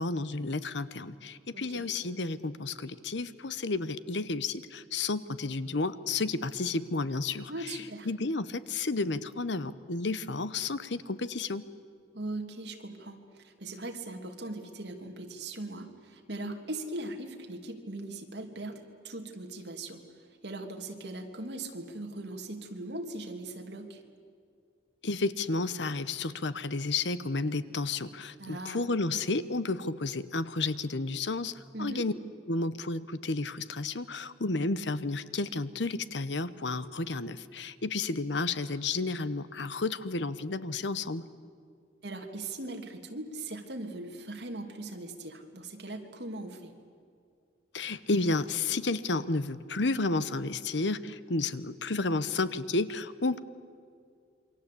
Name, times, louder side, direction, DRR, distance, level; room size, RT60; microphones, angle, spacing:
voice 1, 0.0-7.5 8.0-11.6 25.0-32.1 32.5-41.2 47.7-53.4, left 3 dB, 75° left, 14 dB, 1.0 m, -31 dB
voice 2, 1.5-1.8 7.5-8.1 12.1-20.0 20.4-24.0 28.4-28.9 31.7-32.1 42.0-46.7, right 2 dB, 70° right, 4 dB, 2.8 m, -40 dB
28.0 x 24.0 x 8.5 m, 2.2 s
head